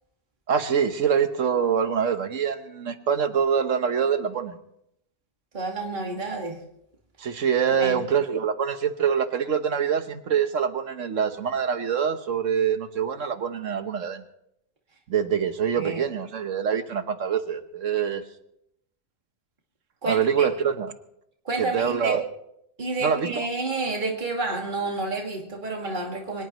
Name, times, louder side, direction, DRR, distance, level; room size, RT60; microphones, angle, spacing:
voice 1, 0.5-4.6 7.2-14.2 15.1-18.2 20.1-20.9 21.6-22.2 23.0-23.5, right 7 dB, 85° right, 9 dB, 1.5 m, -25 dB
voice 2, 5.5-6.6 7.8-8.0 15.8-16.1 20.0-20.5 21.4-22.2 22.8-26.4, right 2 dB, 40° right, 0 dB, 2.4 m, -30 dB
24.0 x 19.5 x 3.1 m, 0.78 s
omnidirectional pair, 1.3 m